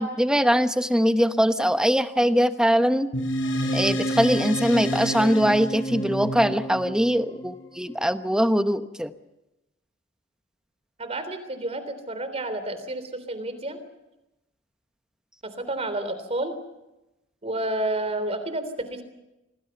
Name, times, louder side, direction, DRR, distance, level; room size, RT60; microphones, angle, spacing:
voice 1, 0.0-3.1 3.7-9.1, equal, 5° right, 9 dB, 1.0 m, -22 dB
sound 1, 3.1-7.9, equal, 70° left, 6.7 m, -29 dB
voice 2, 11.0-13.8 15.4-16.5 17.4-19.0, right 1 dB, 30° right, 11 dB, 3.5 m, -30 dB
27.0 x 19.5 x 7.0 m, 0.97 s
head